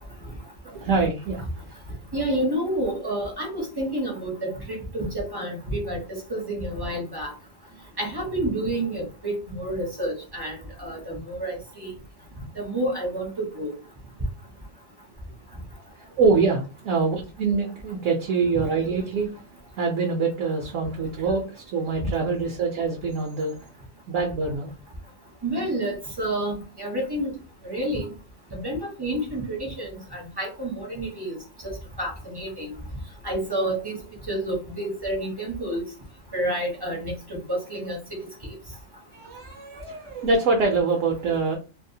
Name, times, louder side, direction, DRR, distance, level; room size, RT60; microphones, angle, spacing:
voice 1, 0.6-1.5 16.2-19.3 19.8-23.5 24.1-24.7 39.1-41.6, right 4 dB, 70° right, 2 dB, 0.9 m, -24 dB
voice 2, 2.1-7.3 8.0-11.9 12.6-13.7 25.4-27.3 27.6-28.1 28.5-31.4 31.6-32.7 33.2-34.0 34.3-35.8 36.3-38.0, right 1 dB, 25° right, -2 dB, 0.5 m, -29 dB
2.7 x 2.0 x 2.6 m, 0.32 s
omnidirectional pair, 1.5 m